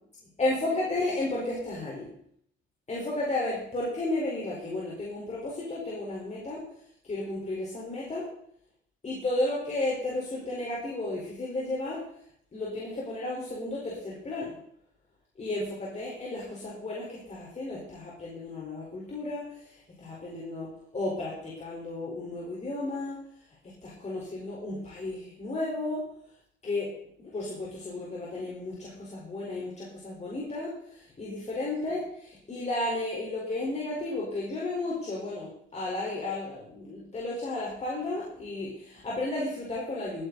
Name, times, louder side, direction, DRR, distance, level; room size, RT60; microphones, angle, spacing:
voice 1, 0.4-2.1 2.9-6.6 7.0-8.3 9.0-12.0 12.5-14.6 15.4-23.2 23.6-26.0 26.6-26.9 27.2-40.3, left 2 dB, 35° left, -5 dB, 4.7 m, -33 dB
18.0 x 10.0 x 4.2 m, 0.68 s
cardioid pair, 90°, 20 cm